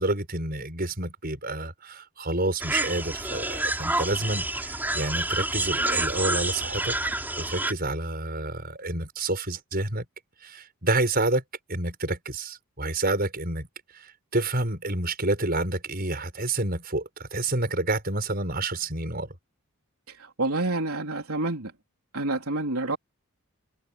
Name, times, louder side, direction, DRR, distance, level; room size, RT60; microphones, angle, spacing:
voice 1, 0.0-6.9 7.4-10.0 10.4-11.4 11.7-13.7 13.9-19.3, right 2 dB, 45° right, 7.0 m, -29 dB
sound 1, 2.6-7.7, right 2 dB, 10° right, 3.9 m, -28 dB
voice 2, 20.1-21.7 22.1-23.0, right 2 dB, 80° right, 3.7 m, -28 dB
head